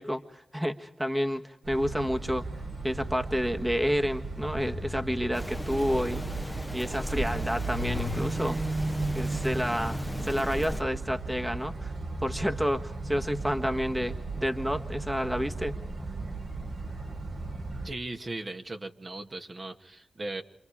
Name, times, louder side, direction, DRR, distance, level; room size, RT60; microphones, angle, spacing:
voice 1, 0.0-2.4 2.8-6.2 6.7-8.6 9.1-11.9 12.2-15.8, equal, 10° right, 6 dB, 1.5 m, -30 dB
sound 1, 1.6-17.9, right 2 dB, 70° right, 4.2 m, -35 dB
Rain, 5.3-10.8, equal, 5° left, 1.0 m, -37 dB
voice 2, 17.8-20.4, right 2 dB, 45° right, 4 dB, 2.0 m, -38 dB
28.0 x 26.5 x 4.9 m, 0.76 s
cardioid pair, 40°, 0 cm